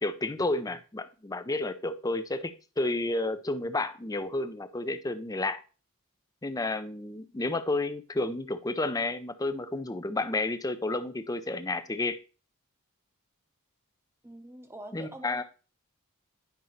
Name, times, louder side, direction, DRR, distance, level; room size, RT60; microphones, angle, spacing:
voice 1, 0.0-5.6 6.4-12.2 14.9-15.4, left 2 dB, 15° left, 0.6 m, -31 dB
voice 2, 14.2-15.4, right 1 dB, 10° right, 0.9 m, -45 dB
10.0 x 5.4 x 3.2 m
head